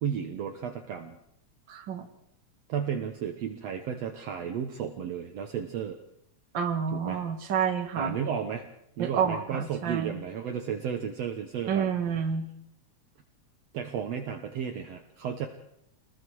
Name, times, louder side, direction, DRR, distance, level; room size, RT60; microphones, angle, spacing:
voice 1, 0.0-1.2 2.7-6.0 6.9-7.2 8.0-8.6 9.0-11.9 13.7-15.5, right 8 dB, 65° right, 4 dB, 2.2 m, -33 dB
voice 2, 1.7-2.0 6.5-8.2 9.0-10.1 11.7-12.5, right 7 dB, 40° right, 4 dB, 2.3 m, -29 dB
27.5 x 21.0 x 4.8 m, 0.77 s
omnidirectional pair, 3.4 m